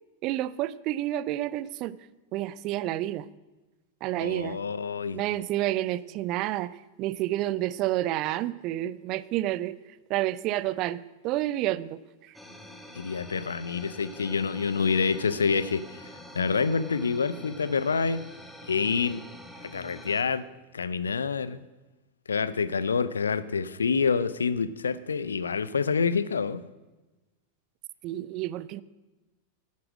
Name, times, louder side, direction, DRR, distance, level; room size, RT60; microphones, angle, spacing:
voice 1, 0.2-2.0 2.3-3.3 4.0-4.6 5.1-9.8 10.1-12.3 28.0-28.8, right 14 dB, 40° right, 0.4 m, -29 dB
voice 2, 4.2-5.2 13.0-16.1 16.3-18.3 18.6-19.2 19.6-20.5 20.7-21.6 22.3-26.6, left 5 dB, 70° left, 0.5 m, -27 dB
sound 1, 12.3-20.2, left 1 dB, 5° left, 1.3 m, -46 dB
10.5 x 8.3 x 6.2 m
figure-of-eight pair, 90°, 0 cm